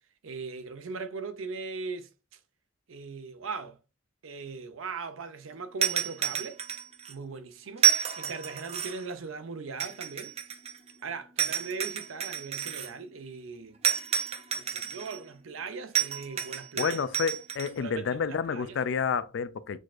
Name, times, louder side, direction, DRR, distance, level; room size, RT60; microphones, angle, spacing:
voice 1, 0.2-2.4 2.9-3.8 4.2-6.6 7.1-7.9 8.2-10.3 11.0-13.8 14.5-17.0 17.8-18.8, right 4 dB, 90° right, 0.6 m, -39 dB
sound 1, 5.8-7.1 7.8-9.1 9.8-10.9 11.4-12.9 13.8-15.2 15.9-17.7, right 8 dB, 30° right, 0.4 m, -29 dB
voice 2, 16.8-19.8, left 6 dB, 65° left, 0.3 m, -29 dB
6.2 x 2.5 x 2.4 m
head